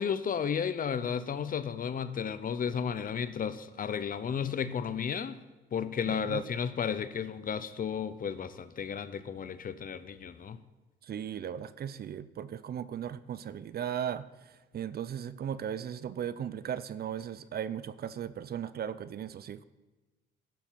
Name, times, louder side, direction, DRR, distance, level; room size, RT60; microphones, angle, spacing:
voice 1, 0.0-5.4 5.7-10.6, left 7 dB, 45° left, 13 dB, 0.7 m, -33 dB
voice 2, 6.0-6.4 11.0-19.6, right 9 dB, 50° right, 16 dB, 0.5 m, -37 dB
12.0 x 7.2 x 5.8 m, 1.2 s
cardioid pair, 90°, 20 cm